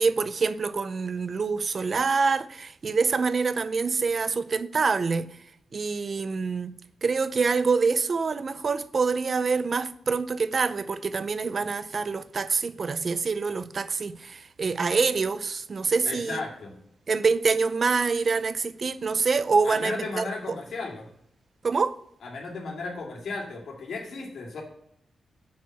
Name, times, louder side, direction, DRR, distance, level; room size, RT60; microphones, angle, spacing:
voice 1, 0.0-5.3 5.7-6.7 7.0-16.4 17.1-20.6 21.6-21.9, right 4 dB, 50° right, 0.5 m, -26 dB
voice 2, 16.0-16.7 19.6-21.1 22.2-24.6, left 3 dB, 80° left, 2.3 m, -35 dB
7.3 x 4.5 x 5.7 m
cardioid pair, 80°, 0 cm